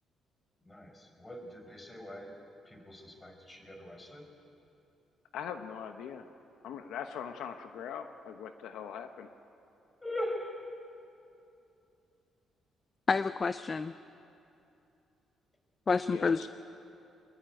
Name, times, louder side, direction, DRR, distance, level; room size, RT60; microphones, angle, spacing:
voice 1, 0.7-2.3 2.7-4.3 10.0-10.6, left 1 dB, 20° left, 3 dB, 5.3 m, -41 dB
voice 2, 5.3-6.3 6.6-9.3 16.1-16.5, left 8 dB, 85° left, 7 dB, 1.1 m, -41 dB
voice 3, 13.1-13.9 15.9-16.5, left 4 dB, 35° left, 12 dB, 0.6 m, -29 dB
24.5 x 21.0 x 9.2 m, 2.7 s
cardioid pair, 90°, 0 cm